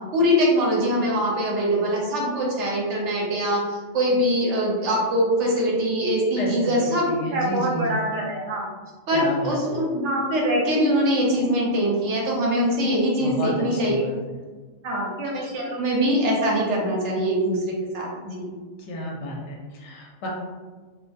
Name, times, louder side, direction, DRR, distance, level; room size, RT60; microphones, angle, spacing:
voice 1, 0.1-8.6 9.1-14.1 14.8-17.6 17.9-18.5, equal, 75° right, -3 dB, 0.9 m, -23 dB
voice 2, 6.4-8.0 9.1-9.6 13.2-14.1 18.8-20.3, left 1 dB, 70° left, -2 dB, 0.9 m, -31 dB
2.3 x 2.2 x 2.5 m, 1.4 s
omnidirectional pair, 1.3 m